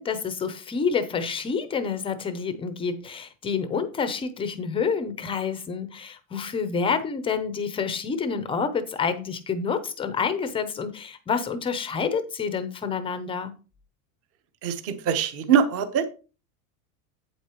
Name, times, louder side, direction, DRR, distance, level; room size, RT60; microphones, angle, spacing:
voice 1, 0.0-13.5, left 5 dB, 10° left, 0.5 m, -28 dB
voice 2, 14.6-16.1, right 8 dB, 30° right, 0.9 m, -23 dB
8.4 x 8.2 x 3.0 m
supercardioid pair, 150°, 45 cm